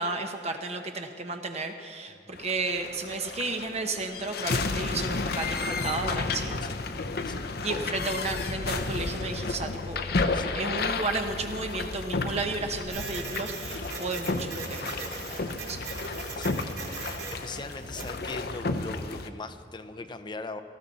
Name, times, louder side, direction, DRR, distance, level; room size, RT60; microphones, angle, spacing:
voice 1, 0.0-6.6 7.6-10.1 10.5-15.8, right 3 dB, 35° right, 5 dB, 0.9 m, -33 dB
voice 2, 2.1-2.4 6.6-6.8 7.2-7.6 10.3-10.6 16.3-20.6, left 3 dB, 25° left, 9 dB, 0.6 m, -41 dB
sound 1, 2.3-19.3, left 3 dB, 60° left, 0.8 m, -32 dB
Printer, 12.9-18.2, right 4 dB, 60° right, 3.0 m, -40 dB
18.5 x 14.0 x 4.1 m, 2.3 s
head